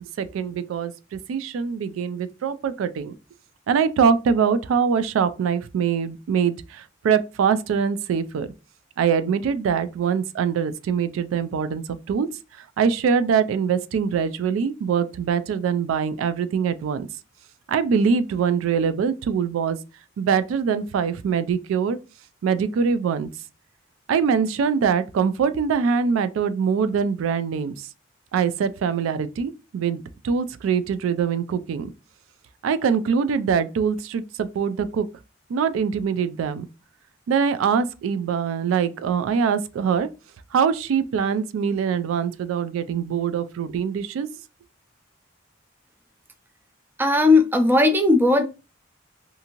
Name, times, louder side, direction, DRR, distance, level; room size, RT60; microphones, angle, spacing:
voice 1, 0.2-3.1 3.7-8.5 9.0-12.3 12.8-17.1 17.7-19.8 20.2-22.0 22.4-23.3 24.1-27.9 28.3-31.9 32.6-35.1 35.5-36.7 37.3-40.1 40.5-44.3, right 6 dB, 90° right, 0.3 m, -23 dB
voice 2, 47.0-48.4, left 2 dB, 10° right, 0.4 m, -17 dB
2.6 x 2.5 x 2.8 m
head